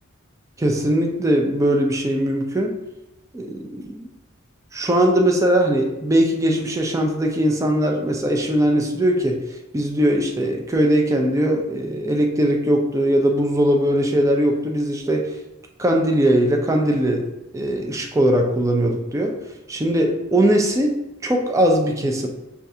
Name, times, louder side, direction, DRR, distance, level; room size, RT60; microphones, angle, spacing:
voice 1, 0.6-2.8 3.3-4.1 4.7-9.4 9.7-15.3 15.8-17.3 17.5-19.3 19.7-22.3, right 1 dB, 15° right, 2 dB, 0.4 m, -20 dB
6.5 x 2.4 x 2.7 m, 1.0 s
head